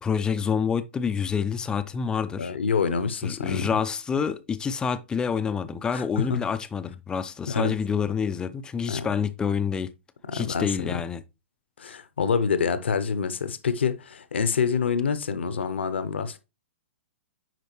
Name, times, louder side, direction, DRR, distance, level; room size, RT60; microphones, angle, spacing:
voice 1, 0.0-2.5 3.2-9.9 10.3-11.2, left 6 dB, 10° left, 0.5 m, -27 dB
voice 2, 2.4-3.7 5.9-6.4 7.5-7.8 8.9-9.1 10.3-10.9 11.8-16.4, left 6 dB, 60° left, 0.9 m, -26 dB
9.2 x 5.0 x 3.1 m
figure-of-eight pair, 115°, 7 cm